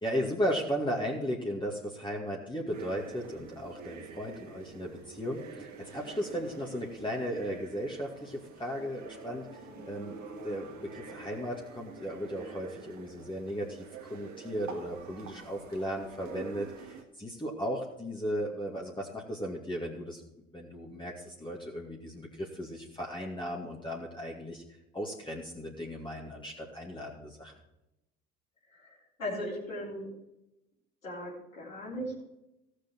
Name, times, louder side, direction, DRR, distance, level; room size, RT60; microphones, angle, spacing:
voice 1, 0.0-9.5 9.8-10.2 10.4-20.2 20.5-24.6 24.9-27.5, equal, 10° left, -2 dB, 2.2 m, -36 dB
sound 1, 2.7-17.0, right 5 dB, 45° right, 2.0 m, -47 dB
voice 2, 9.7-10.0 28.7-30.1 31.0-32.2, equal, 85° left, -8 dB, 3.7 m, -38 dB
16.5 x 6.7 x 4.6 m, 0.91 s
figure-of-eight pair, 60°, 39 cm